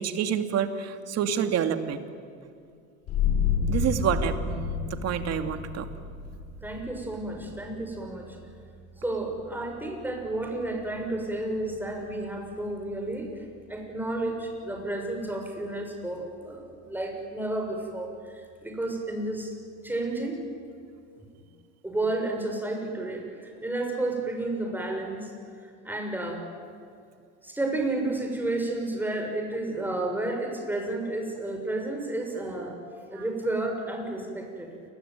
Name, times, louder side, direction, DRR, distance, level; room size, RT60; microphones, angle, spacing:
voice 1, 0.0-2.0 3.7-5.9 33.1-33.2, right 8 dB, 45° right, 8 dB, 2.5 m, -28 dB
sound 1, 3.1-14.3, left 6 dB, 50° left, 7.1 m, -33 dB
voice 2, 6.6-8.4 9.0-13.3 13.7-19.5 19.8-20.4 21.2-21.3 21.8-25.3 25.8-26.4 27.4-32.8 33.1-34.7, right 2 dB, 5° right, 2 dB, 6.4 m, -31 dB
28.5 x 21.5 x 9.6 m, 2.4 s
supercardioid pair, 125°, 35 cm